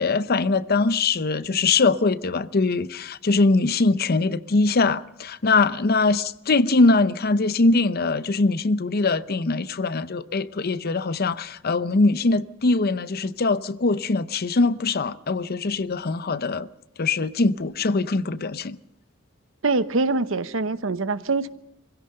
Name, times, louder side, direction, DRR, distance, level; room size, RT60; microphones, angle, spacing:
voice 1, 0.0-16.7 17.0-18.8, left 3 dB, 50° left, 0.7 m, -22 dB
voice 2, 19.6-21.5, right 3 dB, 75° right, 0.9 m, -24 dB
25.0 x 16.5 x 6.6 m
head